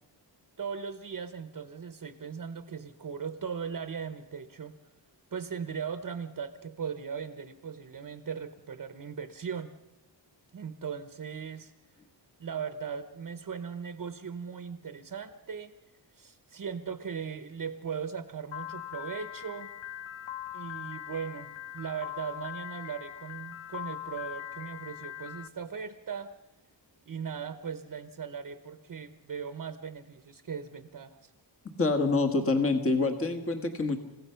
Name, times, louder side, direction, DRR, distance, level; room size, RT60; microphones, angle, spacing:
voice 1, 0.6-4.7 5.3-9.7 10.5-11.7 12.4-15.7 16.1-19.7 20.5-26.3 27.1-31.3, right 6 dB, 45° right, 10 dB, 0.9 m, -38 dB
Piano, 18.5-25.5, left 11 dB, 75° left, 0.9 m, -41 dB
voice 2, 31.8-34.0, left 3 dB, 30° left, 6 dB, 1.5 m, -26 dB
28.5 x 16.0 x 5.7 m, 0.93 s
wide cardioid pair, 180°, 45 cm